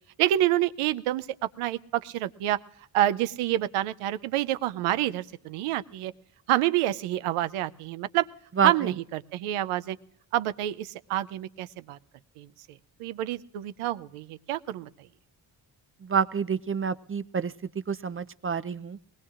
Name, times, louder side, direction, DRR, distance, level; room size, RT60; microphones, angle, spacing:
voice 1, 0.2-1.3 1.6-2.6 2.9-6.1 6.5-8.3 8.6-10.0 10.3-12.0 12.4-12.5 13.0-14.9, right 14 dB, 90° right, 14 dB, 0.6 m, -27 dB
voice 2, 16.0-17.5 17.9-19.0, right 6 dB, 30° right, 15 dB, 0.4 m, -27 dB
21.0 x 19.5 x 2.4 m, 0.70 s
supercardioid pair, 50°, 49 cm